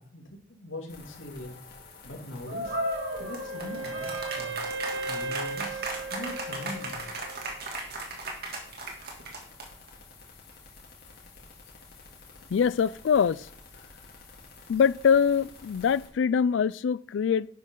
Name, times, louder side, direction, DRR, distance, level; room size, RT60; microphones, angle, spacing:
voice 1, 0.0-1.6 2.0-2.8 3.2-4.6 5.1-5.8 6.1-7.0, left 1 dB, 90° left, 2.5 m, -41 dB
sound 1, 0.9-16.1, left 3 dB, 50° left, 3.3 m, -50 dB
sound 2, 2.5-9.9, right 2 dB, 55° right, 2.5 m, -35 dB
Wind instrument woodwind instrument, 2.6-7.5, right 2 dB, 75° right, 1.8 m, -37 dB
voice 2, 12.5-13.5 14.7-17.5, left 7 dB, 70° left, 0.3 m, -23 dB
11.5 x 9.4 x 3.8 m
head